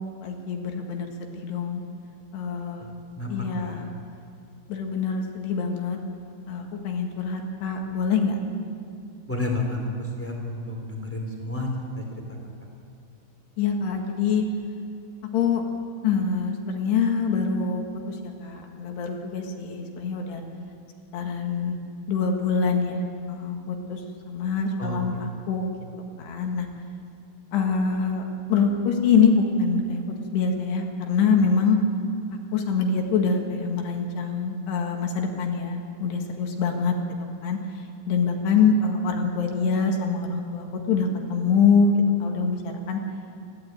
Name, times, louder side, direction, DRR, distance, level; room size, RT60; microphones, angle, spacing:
voice 1, 0.0-1.8 2.3-2.9 3.3-3.9 4.7-6.0 6.5-8.4 13.6-14.4 15.3-15.6 16.0-17.8 18.2-20.4 21.1-21.8 22.1-24.0 24.3-25.7 26.2-26.7 27.5-30.0 30.3-31.8 32.5-36.9 37.4-37.6 38.1-41.9 42.2-42.6 42.9-43.0, left 5 dB, 65° left, 2 dB, 3.6 m, -24 dB
voice 2, 9.3-11.7 11.9-12.0 24.8-25.0, left 1 dB, 5° left, 0 dB, 2.6 m, -30 dB
28.5 x 12.0 x 9.2 m, 2.3 s
omnidirectional pair, 5.6 m